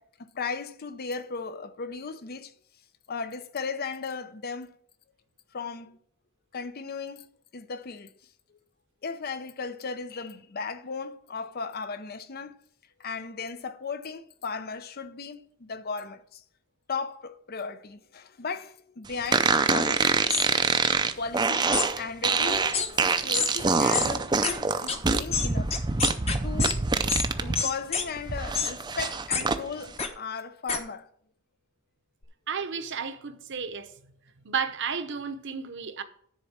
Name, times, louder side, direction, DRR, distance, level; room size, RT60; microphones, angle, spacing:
voice 1, 0.0-2.5 3.1-4.8 5.5-6.0 6.5-7.3 7.5-8.1 8.5-8.6 9.0-12.6 13.0-16.4 16.9-20.1 21.2-21.7 22.0-26.0 26.4-26.8 27.4-31.1, left 5 dB, 45° left, 0.6 m, -36 dB
sound 1, 19.3-27.6 28.0-29.6, right 4 dB, 20° right, 0.5 m, -25 dB
sound 2, 20.3-20.5 21.7-21.9 22.7-22.9 23.3-23.5 23.9-24.1 24.4-24.5 24.9-25.0 25.3-26.7 27.1-27.3 27.5-28.0 28.5-28.7 29.3-29.4 30.0-30.1 30.7-30.8, left 5 dB, 30° left, 1.0 m, -27 dB
voice 2, 32.5-33.9 34.4-36.0, right 6 dB, 55° right, 0.9 m, -32 dB
10.0 x 4.2 x 7.2 m
head